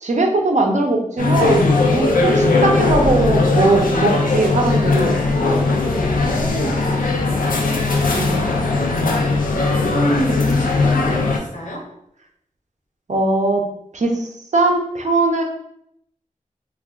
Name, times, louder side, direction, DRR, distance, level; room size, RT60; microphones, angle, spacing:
voice 1, 0.0-1.7 1.9-5.2 8.1-8.5 13.1-13.6 13.9-15.4, right 2 dB, 60° right, 2 dB, 0.5 m, -19 dB
sound 1, 1.2-11.4, left 3 dB, 90° left, 0.4 m, -18 dB
voice 2, 5.9-7.9 9.1-11.9, right 1 dB, 65° left, -1 dB, 0.8 m, -29 dB
2.3 x 2.2 x 3.6 m, 0.73 s
wide cardioid pair, 75°, 14 cm